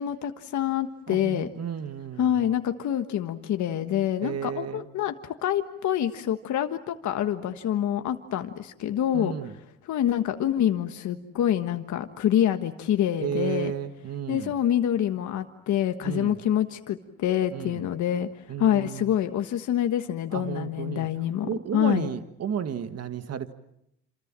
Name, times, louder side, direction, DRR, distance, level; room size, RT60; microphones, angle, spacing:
voice 1, 0.0-1.5 2.2-9.4 9.8-13.7 14.3-18.3 18.6-22.1, left 10 dB, 75° left, 7 dB, 1.5 m, -26 dB
voice 2, 1.1-2.4 4.2-4.9 9.1-9.5 13.2-14.5 16.0-16.4 17.5-17.8 18.5-19.2 20.3-21.1 21.4-23.5, right 8 dB, 60° right, 10 dB, 1.7 m, -33 dB
28.0 x 27.5 x 7.5 m, 0.79 s
cardioid pair, 90°, 29 cm